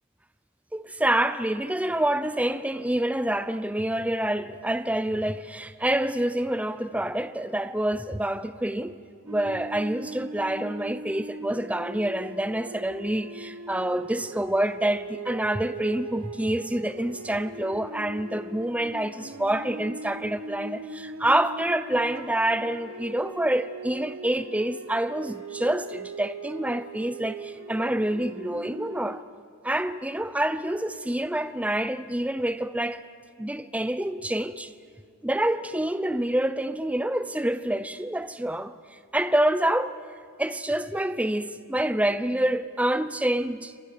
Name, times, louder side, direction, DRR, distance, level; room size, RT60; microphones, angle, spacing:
voice 1, 0.7-9.0 9.2-29.2 29.6-33.0 33.4-34.7 35.2-40.0 40.4-43.7, right 1 dB, 5° right, 0.7 m, -27 dB
sound 1, 9.3-29.2, right 3 dB, 90° right, 1.4 m, -40 dB
29.0 x 25.5 x 6.8 m
head